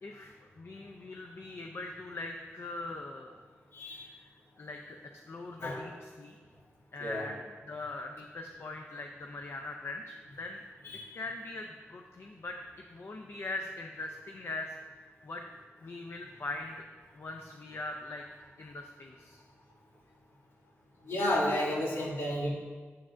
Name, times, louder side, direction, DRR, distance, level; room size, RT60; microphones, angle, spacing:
voice 1, 0.0-3.4 4.1-4.3 4.6-5.0 5.3-6.4 6.9-10.6 11.1-12.6 12.9-15.4 15.8-16.8 17.1-18.2 18.6-19.4, left 2 dB, 55° left, 3 dB, 0.5 m, -41 dB
voice 2, 3.7-4.1 5.6-5.9 7.0-7.3 10.8-11.1 21.1-22.5, left 1 dB, 70° left, -5 dB, 2.1 m, -31 dB
9.4 x 7.3 x 2.5 m, 1.5 s
wide cardioid pair, 110°, 5 cm